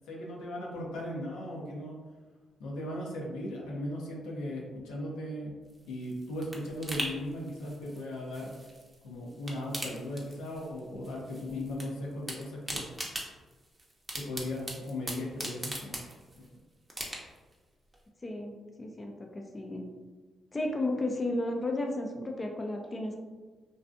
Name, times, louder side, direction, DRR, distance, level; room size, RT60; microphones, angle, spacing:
voice 1, 0.1-2.0 2.6-5.5 5.9-8.5 9.0-12.9 14.2-16.0 16.4-16.5, left 1 dB, 90° left, -2 dB, 0.5 m, -37 dB
sound 1, 5.7-9.0 9.3-10.8 11.0-11.9 12.1-16.5 16.9-17.5 17.9-18.0, right 1 dB, 25° right, 0.6 m, -40 dB
voice 2, 18.2-19.9 20.5-23.1, left 2 dB, 30° left, 2 dB, 0.4 m, -33 dB
2.5 x 2.3 x 2.4 m, 1.3 s
supercardioid pair, 60°, 0 cm